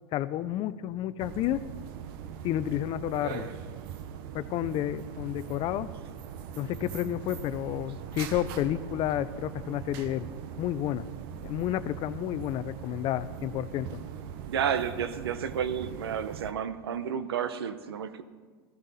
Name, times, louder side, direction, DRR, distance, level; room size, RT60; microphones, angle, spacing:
voice 1, 0.1-1.6 2.4-3.5 4.3-5.9 6.6-10.3 10.6-14.0, left 13 dB, 45° left, 15 dB, 0.5 m, -31 dB
sound 1, 1.2-16.5, right 9 dB, 65° right, 0.9 m, -41 dB
voice 2, 14.5-18.2, right 8 dB, 90° right, 13 dB, 0.8 m, -31 dB
14.5 x 14.0 x 4.2 m, 1.5 s
hypercardioid pair, 105°, 13 cm